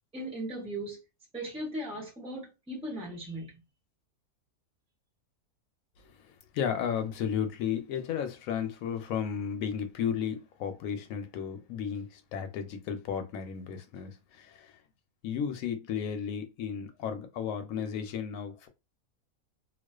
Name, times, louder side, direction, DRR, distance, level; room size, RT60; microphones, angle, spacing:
voice 1, 0.1-1.0 1.3-3.5, right 1 dB, 10° right, 0.3 m, -37 dB
voice 2, 6.5-14.7 15.2-18.7, left 8 dB, 70° left, 0.9 m, -34 dB
2.4 x 2.3 x 2.2 m
omnidirectional pair, 1.6 m